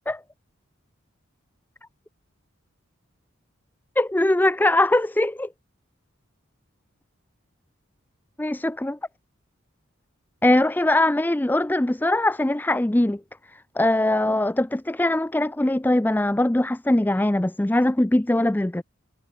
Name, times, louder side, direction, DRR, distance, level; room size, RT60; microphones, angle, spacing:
voice 1, 4.0-5.5 8.4-9.0 10.4-13.2 13.5-18.8, left 1 dB, 10° left, 0.4 m, -21 dB
head